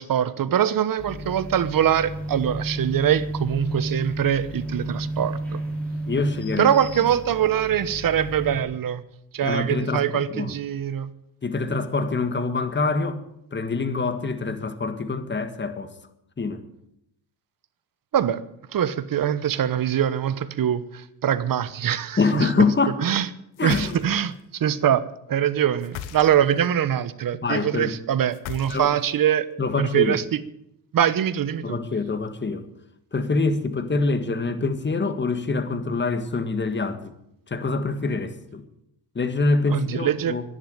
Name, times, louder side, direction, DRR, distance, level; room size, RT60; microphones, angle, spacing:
voice 1, 0.0-5.6 6.6-9.0 9.3-11.1 18.1-18.4 18.7-22.6 23.0-23.3 23.6-25.0 25.3-29.5 29.8-30.4 30.9-31.8 39.7-40.4, right 10 dB, 45° right, 1.1 m, -23 dB
sound 1, 1.0-8.6, right 1 dB, 5° left, 6.2 m, -32 dB
voice 2, 6.1-6.7 9.4-10.5 11.4-13.2 13.5-15.9 16.4-16.6 22.2-23.0 23.6-24.0 27.4-28.0 28.7-28.9 29.6-30.2 31.6-32.7 33.1-37.1 37.5-38.7 39.2-40.4, left 3 dB, 25° left, 1.8 m, -25 dB
sound 2, 23.5-24.4 25.8-26.6 28.3-29.2, left 9 dB, 75° left, 1.4 m, -37 dB
11.5 x 10.5 x 9.2 m
cardioid pair, 90°, 46 cm